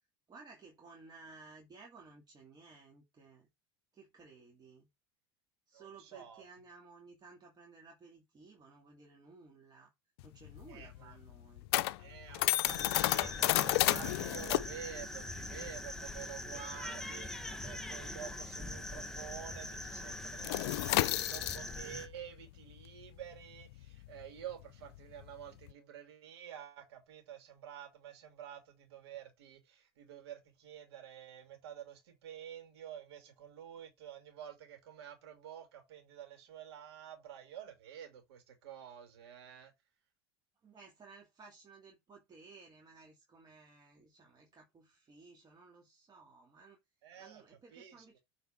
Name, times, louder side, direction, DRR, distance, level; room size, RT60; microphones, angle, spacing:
voice 1, 0.3-3.5 3.9-4.9 5.7-9.9 10.2-11.7 25.5-25.6 40.6-46.8 47.2-48.2, right 4 dB, 30° right, 2.3 m, -57 dB
voice 2, 5.7-6.4 10.7-11.2 12.0-39.7 47.0-47.4 47.7-48.2, right 10 dB, 75° right, 3.0 m, -49 dB
sound 1, 10.2-19.2 19.4-19.7 20.0-25.7, left 18 dB, 70° left, 0.5 m, -33 dB
sound 2, 12.7-22.1, left 1 dB, 5° left, 1.5 m, -43 dB
7.9 x 4.2 x 4.5 m
hypercardioid pair, 85°, 14 cm